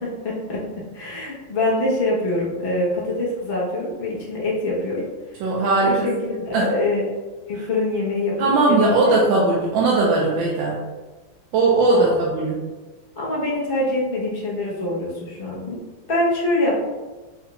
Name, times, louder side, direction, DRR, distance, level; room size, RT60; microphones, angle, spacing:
voice 1, 0.0-0.6 0.9-5.1 5.8-7.1 7.5-9.2 11.9-12.2 13.2-15.8 16.1-16.8, left 2 dB, 45° left, -5 dB, 0.7 m, -24 dB
voice 2, 5.4-6.1 6.5-6.7 8.4-10.8 11.5-12.6, right 3 dB, 80° right, -3 dB, 1.3 m, -19 dB
4.8 x 2.3 x 3.0 m, 1.3 s
omnidirectional pair, 2.1 m